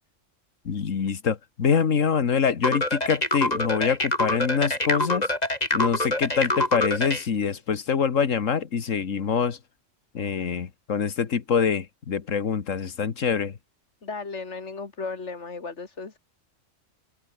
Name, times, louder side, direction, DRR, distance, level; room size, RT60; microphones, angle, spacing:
voice 1, 0.7-5.3 5.7-9.6 10.1-13.5, left 6 dB, 90° left, 1.8 m, -25 dB
sound 1, 2.6-7.2, left 1 dB, 30° left, 4.8 m, -25 dB
voice 2, 14.0-16.2, left 4 dB, 65° left, 2.8 m, -35 dB
omnidirectional pair, 1.3 m